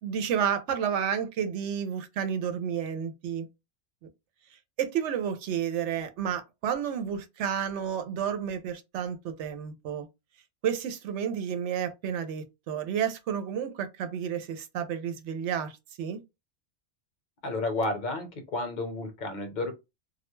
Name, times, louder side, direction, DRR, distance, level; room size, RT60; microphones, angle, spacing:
voice 1, 0.0-3.5 4.8-10.1 10.6-16.2, right 8 dB, 80° right, 0.9 m, -31 dB
voice 2, 17.4-19.7, left 2 dB, 45° left, 0.8 m, -31 dB
2.3 x 2.1 x 3.0 m
omnidirectional pair, 1.2 m